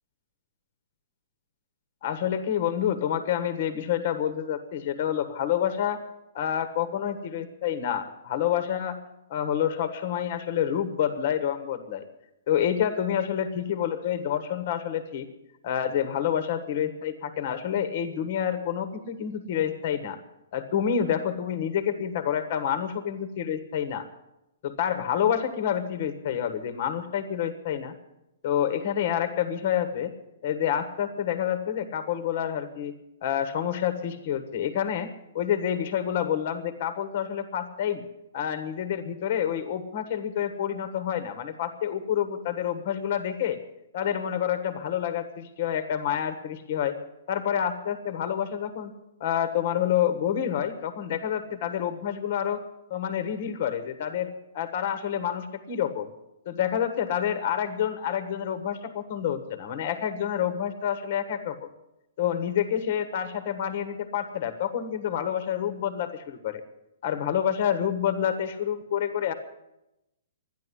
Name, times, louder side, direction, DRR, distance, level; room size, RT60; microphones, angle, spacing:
voice 1, 2.0-6.0 6.3-9.0 9.3-12.0 12.5-15.3 15.6-20.2 20.5-24.1 24.6-27.9 28.4-30.1 30.4-38.0 38.3-43.6 43.9-47.0 47.3-48.9 49.2-52.6 52.9-56.1 56.4-61.7 62.2-66.6 67.0-69.3, left 9 dB, 40° left, 10 dB, 1.3 m, -28 dB
13.0 x 10.5 x 9.9 m, 0.90 s
hypercardioid pair, 170°, 0 cm